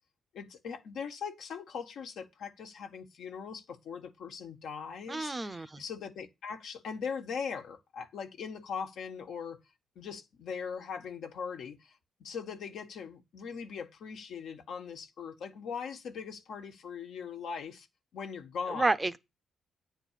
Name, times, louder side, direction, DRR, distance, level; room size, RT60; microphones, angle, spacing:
voice 1, 0.3-9.6 9.9-17.9 18.1-18.9, left 6 dB, 75° left, 1.4 m, -40 dB
voice 2, 5.1-5.8 18.8-19.2, right 2 dB, 15° right, 0.6 m, -30 dB
9.6 x 4.1 x 7.4 m
cardioid pair, 140°, 0 cm